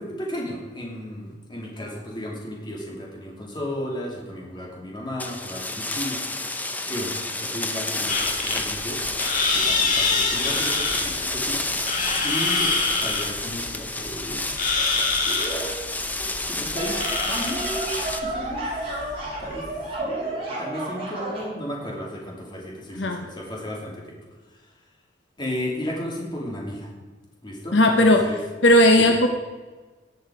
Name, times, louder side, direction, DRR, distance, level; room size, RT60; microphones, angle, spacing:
voice 1, 0.0-9.0 9.6-11.6 12.2-14.4 15.3-15.9 16.2-18.7 19.4-19.7 20.0-24.1 25.4-26.9 27.4-28.4 29.0-29.1, equal, 25° left, -2 dB, 2.7 m, -34 dB
sound 1, 5.2-18.2, left 2 dB, 10° left, 0.7 m, -30 dB
sound 2, 8.1-19.9, left 3 dB, 45° left, 1.9 m, -26 dB
sound 3, 16.8-21.5, right 2 dB, 30° right, 3.9 m, -31 dB
voice 2, 27.7-28.3 28.6-29.3, left 1 dB, 70° left, 4 dB, 0.9 m, -16 dB
18.5 x 6.4 x 4.9 m, 1.3 s
head